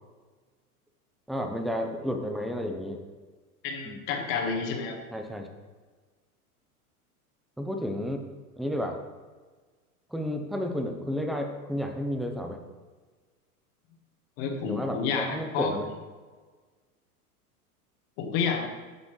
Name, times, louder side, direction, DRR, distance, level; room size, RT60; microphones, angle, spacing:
voice 1, 1.3-3.0 3.8-4.0 5.1-5.5 7.6-8.3 8.6-9.0 10.1-12.6 14.7-15.9, equal, ahead, 5 dB, 0.8 m, -31 dB
voice 2, 3.6-5.0 14.4-15.7 18.2-18.7, left 5 dB, 50° left, 3 dB, 1.8 m, -30 dB
9.5 x 7.2 x 3.3 m, 1.4 s
hypercardioid pair, 100°, 45 cm